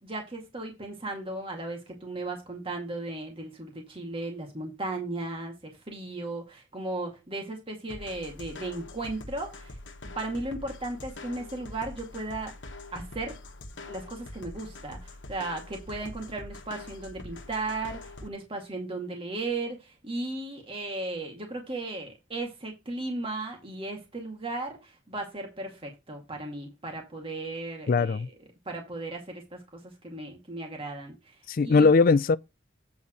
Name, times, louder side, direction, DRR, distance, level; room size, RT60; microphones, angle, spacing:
voice 1, 0.0-9.7 10.2-12.5 12.9-13.4 13.9-28.4 28.7-29.6 30.0-31.2 31.6-31.9, right 2 dB, 30° right, 2.2 m, -36 dB
sound 1, 7.9-18.3, left 2 dB, 75° left, 1.2 m, -44 dB
voice 2, 27.9-28.3 31.5-32.4, left 4 dB, 50° left, 0.4 m, -20 dB
8.7 x 4.1 x 6.2 m
head